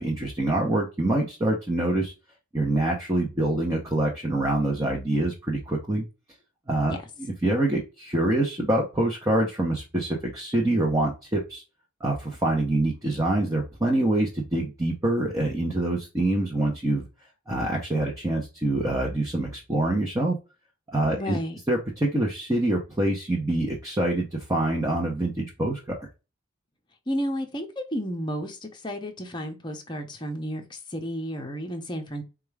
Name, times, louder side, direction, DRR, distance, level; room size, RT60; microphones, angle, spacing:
voice 1, 0.0-2.1 2.5-6.0 6.7-7.0 7.4-11.6 12.0-17.0 17.5-20.4 20.9-21.4 21.7-26.0, right 1 dB, 15° right, -2 dB, 0.7 m, -25 dB
voice 2, 21.1-21.6 27.1-32.2, equal, 20° left, 3 dB, 0.8 m, -32 dB
4.5 x 2.3 x 3.2 m, 0.29 s
head